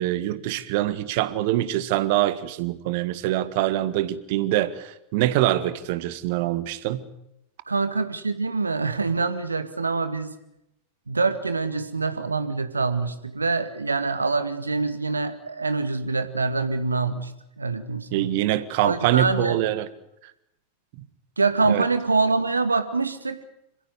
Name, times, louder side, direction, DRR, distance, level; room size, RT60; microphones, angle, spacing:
voice 1, 0.0-7.1 18.1-19.9 21.7-21.9, right 14 dB, 50° right, 14 dB, 1.6 m, -24 dB
voice 2, 7.7-10.3 11.1-17.3 17.6-18.3 18.8-19.6 21.4-23.4, right 4 dB, 80° right, 10 dB, 2.0 m, -25 dB
27.0 x 15.5 x 9.8 m, 0.83 s
figure-of-eight pair, 90°, 0 cm